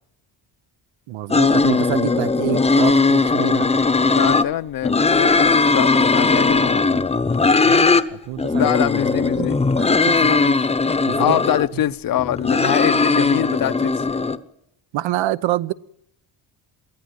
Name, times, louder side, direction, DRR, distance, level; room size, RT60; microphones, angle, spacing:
voice 1, 1.1-3.7 7.6-8.7 9.4-9.5 9.8-10.3 11.1-11.4 11.7-11.8 14.9-15.7, right 14 dB, 85° right, 1.0 m, -26 dB
sound 1, 1.3-4.5 4.8-8.0 8.4-11.7 12.2-14.4, left 3 dB, 15° left, 0.8 m, -18 dB
voice 2, 4.1-7.0 8.5-9.6 10.2-10.6 11.2-13.9, left 12 dB, 50° left, 0.7 m, -24 dB
22.5 x 15.0 x 9.2 m
cardioid pair, 170°, 44 cm